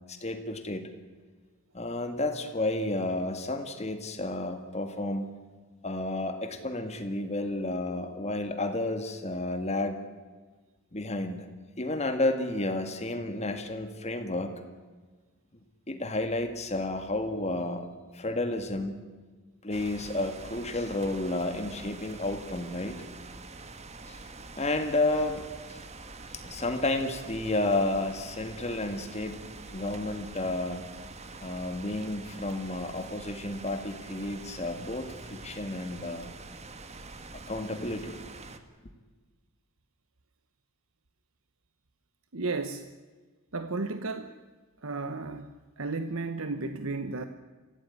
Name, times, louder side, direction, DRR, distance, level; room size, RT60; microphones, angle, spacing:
voice 1, 0.1-0.9 1.7-5.3 5.8-10.0 10.9-11.5 11.8-14.6 15.9-19.0 19.6-23.0 24.1-24.2 24.6-25.4 25.7-25.8 26.3-29.4 29.7-30.8 31.4-36.3 37.5-38.2, left 2 dB, 30° left, 7 dB, 1.9 m, -31 dB
sound 1, 19.7-38.6, right 3 dB, 30° right, 1.6 m, -45 dB
voice 2, 42.3-42.9 43.5-44.4 44.8-47.2, right 3 dB, 75° right, 9 dB, 1.1 m, -33 dB
26.5 x 16.5 x 9.6 m, 1.4 s
head